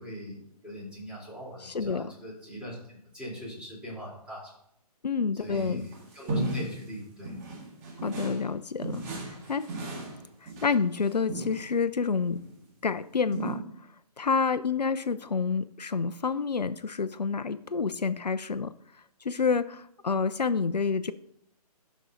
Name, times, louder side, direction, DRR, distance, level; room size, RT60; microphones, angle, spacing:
voice 1, 0.0-2.7 3.1-4.5 5.4-7.3, equal, 5° right, -6 dB, 3.3 m, -40 dB
voice 2, 1.6-2.1 5.0-5.9 8.0-9.7 10.4-12.4 12.8-13.6 14.2-18.7 19.2-21.1, left 5 dB, 90° left, 13 dB, 0.5 m, -28 dB
sound 1, 5.4-6.9 7.2-8.5 8.8-11.7 12.3-12.6 13.3-13.5, right 2 dB, 25° right, 1.8 m, -36 dB
12.0 x 6.0 x 2.7 m, 0.77 s
figure-of-eight pair, 140°, 21 cm